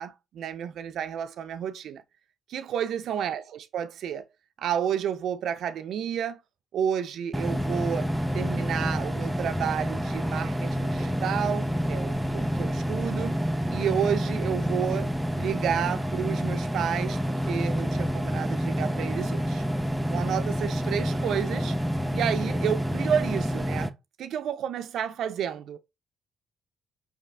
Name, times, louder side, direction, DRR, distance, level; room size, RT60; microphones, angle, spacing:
voice 1, 0.0-2.0 2.5-4.3 4.6-6.4 6.7-13.4 13.7-15.1 15.4-19.6 20.1-21.8 22.1-23.9 24.2-25.8, right 8 dB, 70° right, 0.4 m, -31 dB
sound 1, 7.3-23.9, equal, 5° right, 0.5 m, -28 dB
4.8 x 3.3 x 3.2 m
cardioid pair, 90°, 0 cm